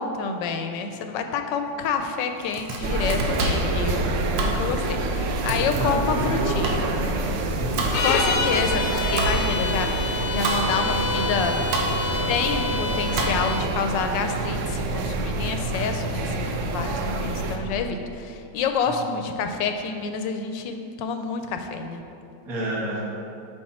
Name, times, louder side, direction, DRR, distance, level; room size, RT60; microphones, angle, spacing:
voice 1, 0.0-4.1 4.4-6.8 8.0-11.6 12.0-22.0, left 5 dB, 85° left, 6 dB, 1.3 m, -28 dB
Domestic sounds home sounds, 2.3-13.7, right 2 dB, 90° right, 1.6 m, -31 dB
sound 1, 2.8-17.6, right 2 dB, 70° right, 0.7 m, -27 dB
voice 2, 5.7-7.2 7.5-7.9 18.9-19.2 22.4-23.0, right 1 dB, 55° right, -5 dB, 1.9 m, -29 dB
sound 2, 7.9-13.7, left 4 dB, 70° left, 0.9 m, -28 dB
7.9 x 5.3 x 4.3 m, 2.7 s
omnidirectional pair, 1.9 m